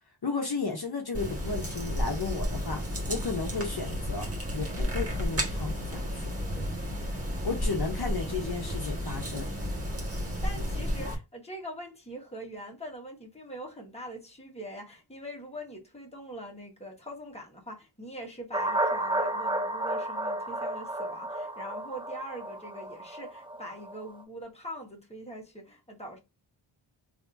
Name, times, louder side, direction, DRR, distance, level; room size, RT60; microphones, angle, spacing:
voice 1, 0.2-2.8 3.1-4.3 4.5-6.3 7.4-9.5, left 4 dB, 50° left, 1.1 m, -33 dB
sound 1, 1.1-11.1, equal, 30° right, 1.6 m, -32 dB
voice 2, 10.4-26.2, equal, 10° left, 1.5 m, -43 dB
sound 2, 18.5-24.1, right 1 dB, 10° right, 0.8 m, -32 dB
3.5 x 3.4 x 2.7 m
wide cardioid pair, 65°, 49 cm